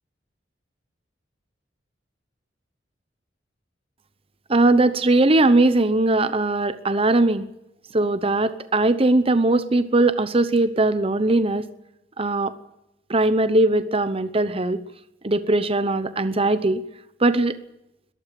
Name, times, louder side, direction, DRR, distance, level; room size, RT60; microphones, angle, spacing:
voice 1, 4.5-7.5 7.9-11.6 12.2-12.5 13.1-14.8 15.2-16.8 17.2-17.5, right 2 dB, 30° right, 12 dB, 0.9 m, -20 dB
22.0 x 13.5 x 9.1 m, 0.85 s
head